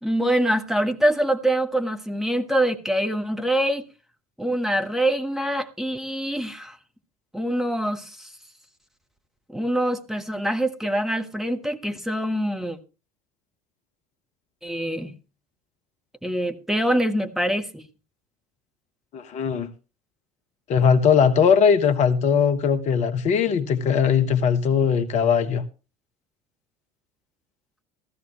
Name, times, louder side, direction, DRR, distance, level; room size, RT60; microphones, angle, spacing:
voice 1, 0.0-3.9 4.4-6.8 7.3-8.3 9.5-12.8 14.6-15.1 16.2-17.8, right 1 dB, ahead, 1.4 m, -24 dB
voice 2, 19.1-19.7 20.7-25.6, left 7 dB, 40° left, 1.2 m, -20 dB
15.0 x 14.0 x 3.1 m
figure-of-eight pair, 70°, 19 cm